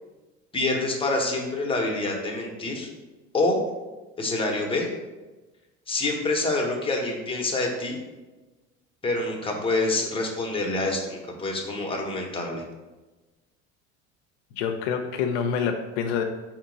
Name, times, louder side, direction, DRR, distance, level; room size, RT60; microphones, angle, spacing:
voice 1, 0.5-2.9 3.3-3.6 4.2-4.9 5.9-8.0 9.0-12.6, left 2 dB, 15° left, 1 dB, 0.9 m, -26 dB
voice 2, 14.5-16.2, left 6 dB, 70° left, 5 dB, 0.5 m, -26 dB
4.4 x 2.9 x 3.9 m, 1.2 s
hypercardioid pair, 80°, 37 cm